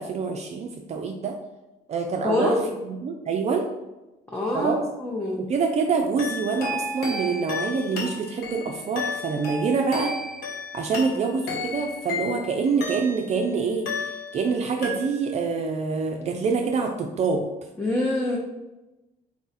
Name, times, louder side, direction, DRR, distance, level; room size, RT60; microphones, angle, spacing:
voice 1, 0.0-1.3 1.9-2.6 2.9-3.7 4.5-4.8 5.4-10.1 10.7-17.5, right 5 dB, 40° right, 2 dB, 0.4 m, -26 dB
voice 2, 2.2-2.6 4.3-5.5 17.8-18.4, left 2 dB, 15° left, -2 dB, 0.6 m, -25 dB
sound 1, 6.2-13.4 13.9-14.5 14.8-15.5, left 3 dB, 70° left, 1.0 m, -33 dB
4.1 x 2.3 x 4.0 m, 1.0 s
cardioid pair, 110°, 17 cm